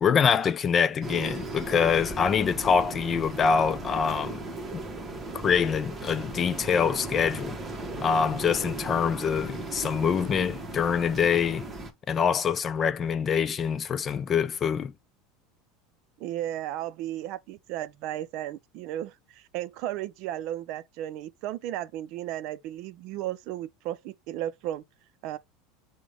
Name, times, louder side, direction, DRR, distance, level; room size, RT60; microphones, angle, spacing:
voice 1, 0.0-4.4 5.3-7.6 8.0-11.7 12.1-14.9, left 6 dB, 30° left, 0.3 m, -25 dB
sound 1, 1.0-11.9, right 2 dB, 15° right, 1.0 m, -37 dB
voice 2, 16.2-24.8 25.2-25.4, right 13 dB, 60° right, 0.4 m, -34 dB
5.0 x 2.1 x 4.9 m
supercardioid pair, 115°, 0 cm